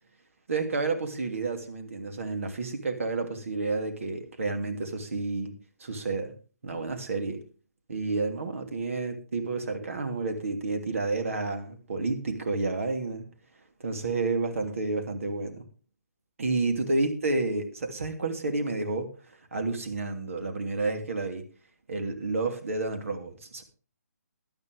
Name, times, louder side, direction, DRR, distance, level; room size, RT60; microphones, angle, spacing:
voice 1, 0.5-5.5 5.8-6.3 6.6-7.4 7.9-13.2 13.8-15.6 16.4-19.1 19.5-21.4 21.9-23.6, right 3 dB, 50° right, 5 dB, 2.8 m, -30 dB
13.5 x 12.5 x 3.5 m, 0.36 s
figure-of-eight pair, 140°, 9 cm